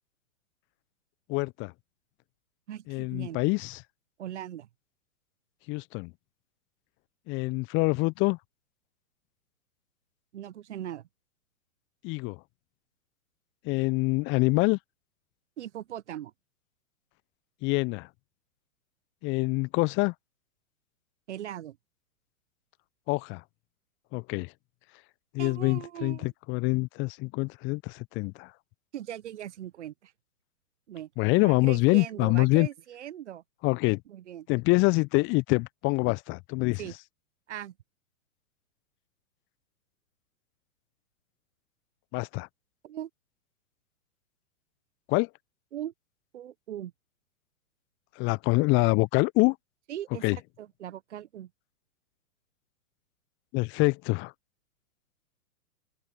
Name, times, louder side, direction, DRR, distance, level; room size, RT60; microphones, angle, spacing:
voice 1, 1.3-1.7 2.9-3.8 5.7-6.1 7.3-8.4 12.0-12.4 13.6-14.8 17.6-18.1 19.2-20.1 23.1-23.4 24.1-24.5 25.3-28.5 31.2-32.7 33.6-34.0 34.5-36.8 42.1-42.5 45.1-45.3 48.2-49.6 50.2-50.4 53.5-54.3, left 26 dB, 30° left, 1.2 m, -25 dB
voice 2, 2.7-3.4 4.2-4.7 10.3-11.0 15.6-16.3 21.3-21.8 25.4-26.3 28.9-30.1 30.9-31.1 31.4-33.4 34.1-34.5 36.8-36.9 37.5-37.7 42.8-43.1 45.7-45.9 46.3-46.9 49.9-51.5, right 11 dB, 55° right, 1.3 m, -39 dB
open air
figure-of-eight pair, 110°, 42 cm